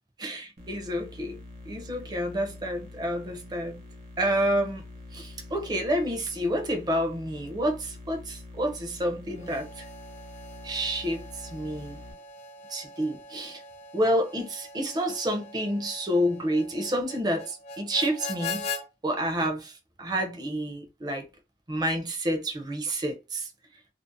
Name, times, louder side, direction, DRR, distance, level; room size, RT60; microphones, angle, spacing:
voice 1, 0.2-1.4 1.7-3.8 4.2-4.8 5.1-9.8 10.6-12.0 12.7-13.6 13.9-18.6 19.0-21.2 21.7-23.5, equal, 25° right, 0.5 m, -29 dB
sound 1, 0.6-12.1, left 2 dB, 65° right, 1.0 m, -46 dB
Harmonica, 9.3-18.8, left 3 dB, 40° left, 0.4 m, -41 dB
2.4 x 2.0 x 2.5 m
head